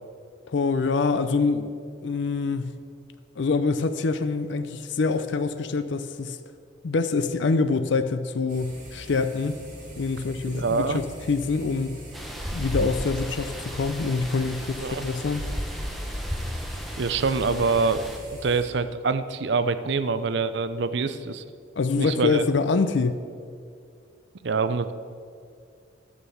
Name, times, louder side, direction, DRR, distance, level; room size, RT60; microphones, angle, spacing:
voice 1, 0.5-2.7 3.4-6.4 6.8-9.6 10.0-12.0 12.5-15.4 21.8-23.2, left 4 dB, 65° left, 10 dB, 0.5 m, -25 dB
sound 1, 8.5-18.7, equal, 40° right, 2.6 m, -43 dB
voice 2, 10.4-11.0 14.8-15.0 17.0-18.0 18.4-21.4 22.0-22.5 24.4-24.9, right 4 dB, 60° right, 11 dB, 0.5 m, -25 dB
sound 2, 12.1-18.2, equal, ahead, 0.9 m, -34 dB
11.0 x 6.3 x 7.0 m, 2.3 s
head